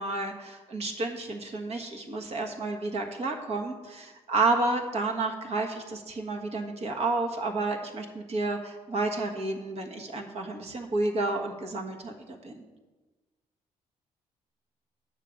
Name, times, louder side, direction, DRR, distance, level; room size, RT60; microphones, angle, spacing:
voice 1, 0.0-12.6, right 3 dB, 50° right, 4 dB, 1.4 m, -31 dB
8.3 x 6.8 x 5.1 m, 1.2 s
cardioid pair, 90°, 14 cm